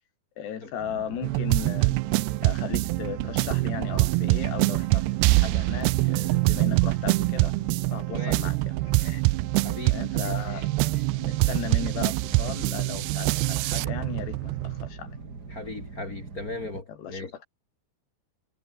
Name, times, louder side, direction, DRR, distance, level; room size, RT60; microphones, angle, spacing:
voice 1, 0.4-2.0 2.4-5.1 5.3-7.6 7.9-9.2 9.9-15.2 16.9-17.4, left 9 dB, 80° left, 5.0 m, -37 dB
sound 1, 0.8-16.8, right 4 dB, 25° right, 3.2 m, -42 dB
sound 2, 1.2-14.9, right 24 dB, 85° right, 2.6 m, -25 dB
voice 2, 9.6-10.3 15.5-17.3, left 3 dB, 35° left, 1.6 m, -37 dB
omnidirectional pair, 4.8 m